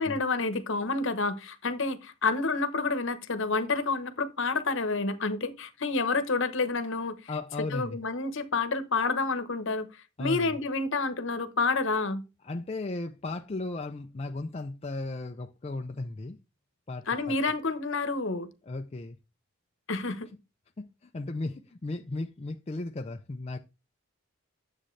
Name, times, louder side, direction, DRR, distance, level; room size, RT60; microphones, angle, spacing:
voice 1, 0.0-7.2 7.7-9.9 10.2-12.2 17.1-18.5 19.9-20.3, left 3 dB, 55° left, 1.0 m, -29 dB
voice 2, 7.3-8.0 10.2-10.5 12.4-16.4 16.9-17.4 18.7-19.2 20.8-23.6, left 2 dB, 25° left, 0.4 m, -35 dB
10.0 x 7.5 x 3.2 m
head